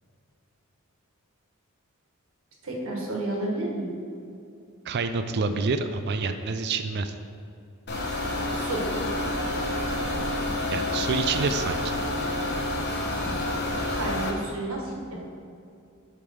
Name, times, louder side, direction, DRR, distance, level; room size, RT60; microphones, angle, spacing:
voice 1, 2.6-3.9 8.5-8.8 13.2-13.3 13.9-15.2, right 2 dB, 65° right, -1 dB, 1.5 m, -31 dB
voice 2, 4.8-7.1 10.7-12.0, right 4 dB, 50° right, 8 dB, 0.4 m, -27 dB
sound 1, 7.9-14.3, left 1 dB, 50° left, 1.2 m, -28 dB
8.5 x 3.5 x 6.1 m, 2.5 s
head